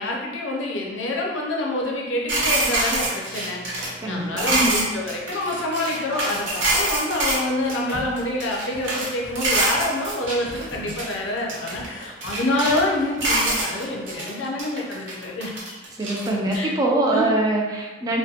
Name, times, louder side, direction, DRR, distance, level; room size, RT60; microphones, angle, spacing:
voice 1, 0.0-15.7 16.5-16.7 17.1-17.2, left 1 dB, 80° left, -1 dB, 0.5 m, -27 dB
sound 1, 2.3-7.4 7.7-9.1 9.4-11.1 11.5-12.9 13.2-14.3 14.6-16.6, right 2 dB, 75° right, 0.7 m, -25 dB
voice 2, 4.0-4.5 15.9-18.2, right 2 dB, 20° right, -1 dB, 0.3 m, -23 dB
sound 2, 6.3-14.2, equal, 25° left, 0.6 m, -42 dB
2.3 x 2.1 x 2.7 m, 1.2 s
head